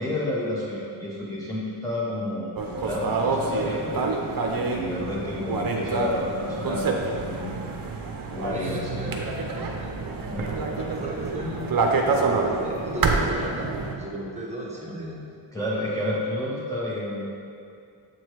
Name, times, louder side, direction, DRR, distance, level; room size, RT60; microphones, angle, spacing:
voice 1, 0.0-4.1 4.5-7.6 8.3-9.1 10.3-10.5 15.5-17.3, left 1 dB, 5° left, -7 dB, 0.9 m, -30 dB
sound 1, 2.6-13.9, right 3 dB, 45° right, 0.7 m, -27 dB
voice 2, 8.5-10.0 10.5-11.8 12.4-15.3, right 1 dB, 15° right, -5 dB, 1.2 m, -35 dB
7.6 x 3.1 x 4.6 m, 2.5 s
cardioid pair, 70°, 48 cm